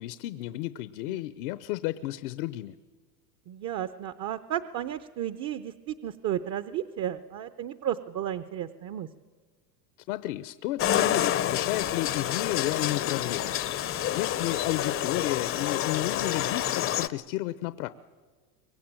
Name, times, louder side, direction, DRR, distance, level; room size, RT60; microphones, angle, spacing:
voice 1, 0.0-2.8 10.1-13.6 14.1-17.9, left 16 dB, 65° left, 14 dB, 0.9 m, -32 dB
voice 2, 3.5-9.1, right 11 dB, 35° right, 12 dB, 0.8 m, -33 dB
sound 1, 10.8-17.1, left 11 dB, 25° left, 0.7 m, -28 dB
24.0 x 20.0 x 8.9 m, 1.5 s
supercardioid pair, 120°, 49 cm